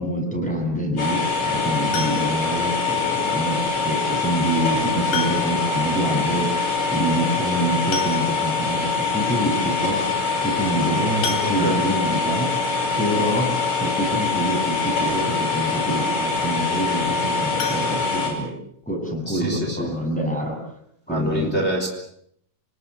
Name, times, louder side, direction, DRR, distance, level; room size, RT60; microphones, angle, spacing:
voice 1, 0.0-10.0 10.4-12.6 13.0-18.5 18.9-20.6 21.1-21.5, right 1 dB, ahead, -1 dB, 7.3 m, -26 dB
sound 1, 1.0-18.3, left 4 dB, 50° left, 6.7 m, -24 dB
sound 2, 1.9-2.6 4.0-4.1 5.1-5.7 6.0-6.1 6.4-6.5 7.5-7.6 7.9-8.6 9.2-9.3 9.6-9.8 11.2-12.1 17.5-18.8 19.1-19.2 19.7-19.8 20.1-20.2, left 5 dB, 80° left, 4.2 m, -32 dB
voice 2, 11.4-11.8 19.3-19.9 21.1-21.9, right 1 dB, 15° left, 2 dB, 3.7 m, -26 dB
26.5 x 18.5 x 8.3 m, 0.71 s
omnidirectional pair, 4.3 m